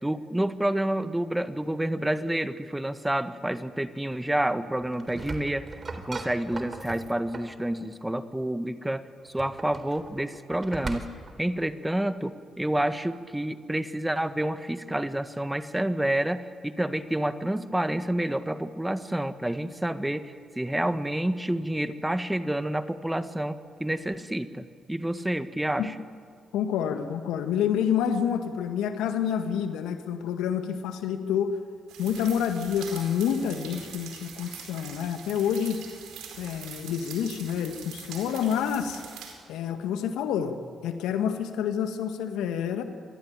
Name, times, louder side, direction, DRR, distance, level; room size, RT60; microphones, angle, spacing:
voice 1, 0.0-11.1 11.4-25.9, right 1 dB, 10° right, 11 dB, 1.6 m, -29 dB
sound 1, 4.8-7.6 9.2-11.4, right 3 dB, 40° right, 3.8 m, -39 dB
voice 2, 26.5-31.5 32.0-35.8 36.4-39.0 39.5-40.6 40.8-42.8, left 8 dB, 75° left, 7 dB, 1.9 m, -28 dB
sound 2, 31.9-39.3, right 7 dB, 75° right, 4.6 m, -43 dB
26.5 x 21.5 x 9.0 m, 2.2 s
hypercardioid pair, 45°, 0 cm